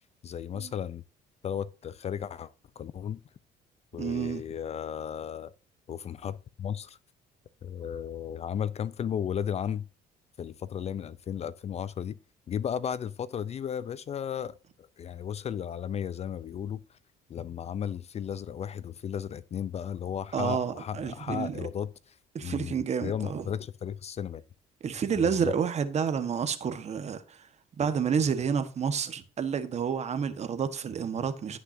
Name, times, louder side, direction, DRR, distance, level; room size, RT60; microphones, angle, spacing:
voice 1, 0.2-1.0 1.4-3.2 3.9-5.5 5.9-7.0 7.6-9.9 10.4-12.2 12.5-16.8 17.3-22.7 23.0-24.4 25.2-25.5, left 8 dB, 40° left, 0.5 m, -35 dB
voice 2, 4.0-4.4 20.3-21.6 22.3-23.4 24.8-27.4 27.8-31.6, right 7 dB, 40° right, 1.3 m, -29 dB
16.0 x 5.8 x 2.7 m
cardioid pair, 110°, 17 cm